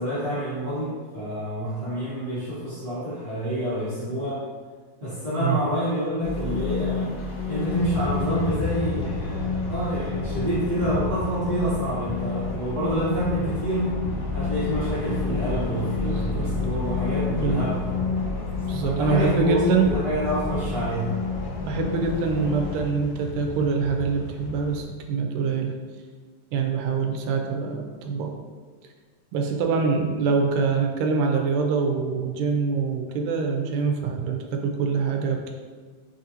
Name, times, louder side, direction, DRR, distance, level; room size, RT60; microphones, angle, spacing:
voice 1, 0.0-4.4 5.0-7.0 7.5-13.9 14.3-18.0 18.8-21.1, equal, 60° right, -12 dB, 0.9 m, -28 dB
sound 1, 6.2-22.9, left 4 dB, 65° left, 0.6 m, -30 dB
sound 2, 7.8-24.8, left 4 dB, 85° left, 1.5 m, -35 dB
voice 2, 16.0-16.5 17.2-17.6 18.7-19.9 21.7-25.7 26.5-28.3 29.3-35.5, right 5 dB, 85° right, 2 dB, 2.1 m, -25 dB
5.9 x 2.5 x 2.7 m, 1.5 s
omnidirectional pair, 3.6 m